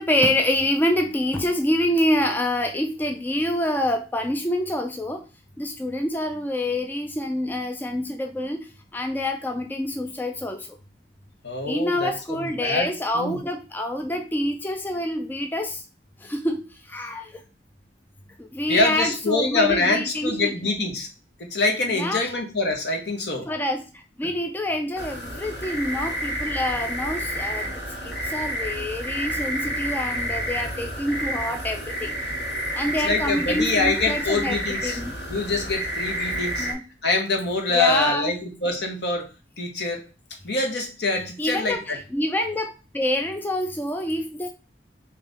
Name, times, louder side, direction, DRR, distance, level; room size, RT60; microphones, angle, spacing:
voice 1, 0.0-5.2 5.6-10.8 11.7-15.8 16.2-17.4 18.4-20.5 21.9-22.3 23.5-27.7 28.0-32.2 32.7-35.1 36.6-36.8 37.7-38.3 41.4-44.5, left 1 dB, 10° left, 5 dB, 0.3 m, -26 dB
voice 2, 11.4-12.9 13.1-13.4 18.7-21.1 21.4-23.5 33.0-35.0 35.3-36.7 37.0-39.2 39.6-40.0 40.4-42.0, left 3 dB, 65° left, 2 dB, 1.1 m, -25 dB
sound 1, 25.0-36.7, equal, 85° left, 1.8 m, -30 dB
3.6 x 3.0 x 3.9 m, 0.33 s
head